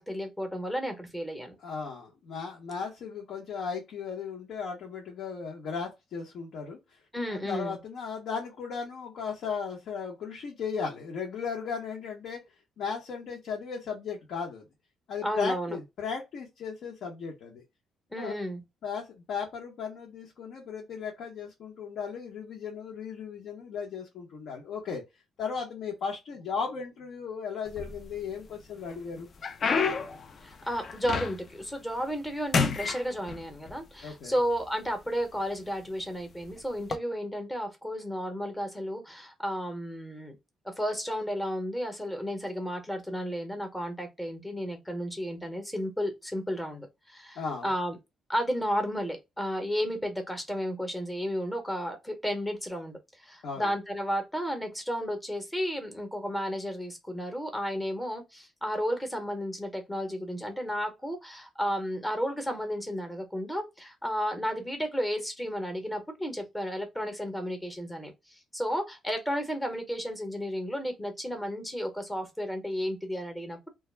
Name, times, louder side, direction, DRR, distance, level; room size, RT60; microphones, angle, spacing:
voice 1, 0.0-1.6 7.1-7.8 15.2-15.8 18.1-18.6 30.4-40.3 40.6-48.0 48.3-73.7, equal, 10° left, 0.7 m, -33 dB
voice 2, 1.6-6.8 7.3-12.4 12.8-14.7 15.1-17.6 18.2-18.3 18.8-25.0 25.4-29.3 34.0-34.3 47.4-47.7 53.4-53.7, left 6 dB, 70° left, 0.8 m, -36 dB
sound 1, 27.7-28.4 28.9-31.6 32.0-32.3 32.5-33.8 34.6-34.7 35.4-35.6 36.8-37.0, left 5 dB, 40° left, 0.4 m, -30 dB
2.3 x 2.0 x 3.1 m
cardioid pair, 135°, 0 cm